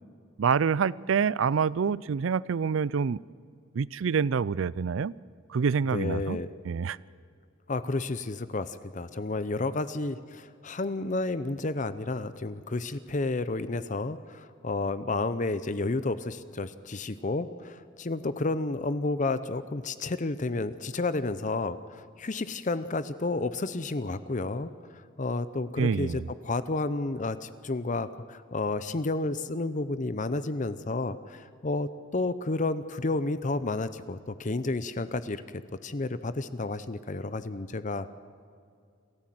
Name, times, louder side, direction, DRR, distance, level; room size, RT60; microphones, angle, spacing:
voice 1, 0.4-3.2 3.7-5.1 5.5-6.4 6.7-7.0 25.8-26.3, right 6 dB, 80° right, 21 dB, 0.4 m, -26 dB
voice 2, 5.9-6.5 7.7-35.4 35.8-38.1, left 2 dB, 40° left, 13 dB, 0.7 m, -31 dB
27.5 x 14.5 x 7.7 m, 2.3 s
head